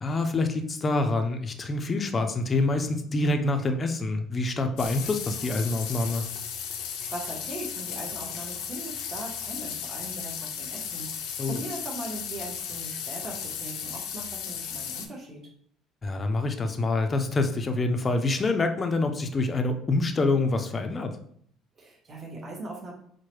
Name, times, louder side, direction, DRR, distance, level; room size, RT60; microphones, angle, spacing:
voice 1, 0.0-6.2 11.4-11.6 16.0-21.1, left 2 dB, 25° left, 6 dB, 0.4 m, -26 dB
sound 1, 4.8-15.1, left 8 dB, 85° left, 0.5 m, -35 dB
voice 2, 6.7-15.4 21.8-22.9, right 2 dB, 30° right, -2 dB, 1.0 m, -40 dB
4.5 x 2.1 x 3.0 m, 0.65 s
cardioid pair, 120°, 0 cm